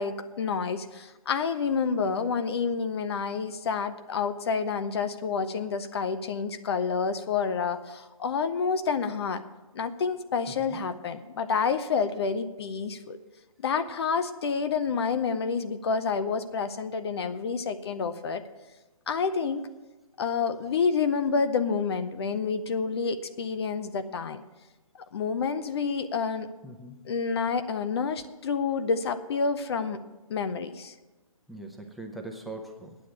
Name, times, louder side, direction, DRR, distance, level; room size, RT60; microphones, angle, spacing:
voice 1, 0.0-9.4 9.7-13.2 13.6-18.4 19.1-19.6 20.2-24.4 25.1-26.5 27.1-30.0 30.3-30.9, left 5 dB, 45° left, 11 dB, 0.7 m, -28 dB
voice 2, 26.6-27.0 31.5-33.0, right 2 dB, ahead, 2 dB, 0.8 m, -41 dB
10.0 x 7.4 x 8.6 m, 1.1 s
hypercardioid pair, 145°, 19 cm